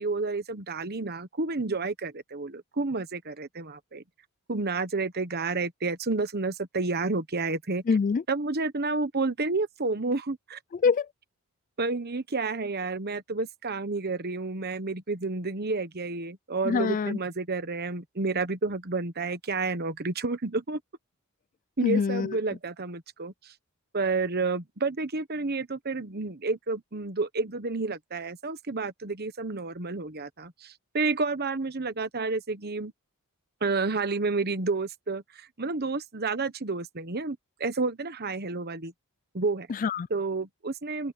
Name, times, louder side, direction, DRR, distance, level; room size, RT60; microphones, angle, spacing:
voice 1, 0.0-4.0 4.5-7.8 8.3-10.6 11.8-20.8 21.8-23.5 23.9-32.9 33.6-38.9 39.3-39.7 40.1-41.1, right 3 dB, 45° right, 1.2 m, -30 dB
voice 2, 7.9-8.2 10.7-11.1 16.6-17.2 21.8-22.4 39.7-40.1, left 5 dB, 35° left, 0.3 m, -25 dB
open air
head